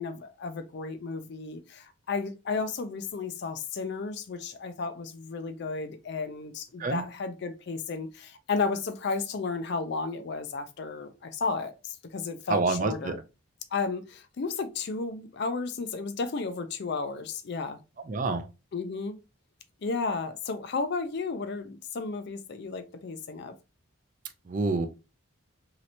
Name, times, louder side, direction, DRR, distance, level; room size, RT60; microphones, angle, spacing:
voice 1, 0.0-13.2 13.7-17.8 18.7-19.2 19.8-23.5, left 4 dB, 50° left, 0.4 m, -33 dB
voice 2, 12.5-13.2 18.1-18.5 24.5-24.9, right 3 dB, 35° right, 0.4 m, -27 dB
3.1 x 2.9 x 2.6 m
head